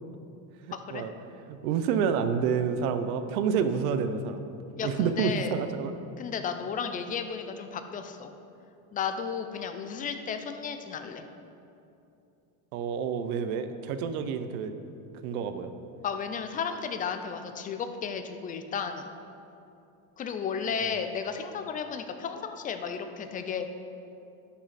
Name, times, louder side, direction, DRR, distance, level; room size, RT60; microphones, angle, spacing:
voice 1, 0.7-1.0 4.8-5.5 6.2-8.3 8.9-11.2 16.0-19.1 20.2-23.7, left 6 dB, 20° left, 8 dB, 0.4 m, -33 dB
voice 2, 1.5-4.5 4.8-5.9 12.7-14.7 15.2-15.7, right 6 dB, 85° right, 9 dB, 0.8 m, -28 dB
12.0 x 5.7 x 4.2 m, 2.7 s
supercardioid pair, 135°, 42 cm